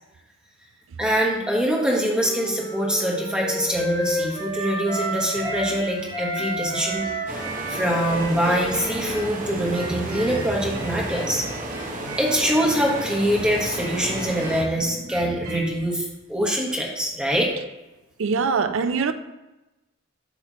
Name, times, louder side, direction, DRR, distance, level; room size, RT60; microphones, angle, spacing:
voice 1, 1.0-11.5 12.2-17.5, equal, 5° right, 1.2 m, -24 dB
Wind instrument woodwind instrument, 1.4-5.8 6.1-10.6, right 1 dB, 20° left, 1.6 m, -31 dB
sound 1, 5.4-9.4 9.7-15.7, right 2 dB, 85° right, 1.1 m, -38 dB
sound 2, 7.3-14.6, right 1 dB, 40° right, 0.9 m, -33 dB
voice 2, 18.2-19.1, right 5 dB, 60° right, 0.4 m, -22 dB
8.1 x 3.2 x 6.1 m
head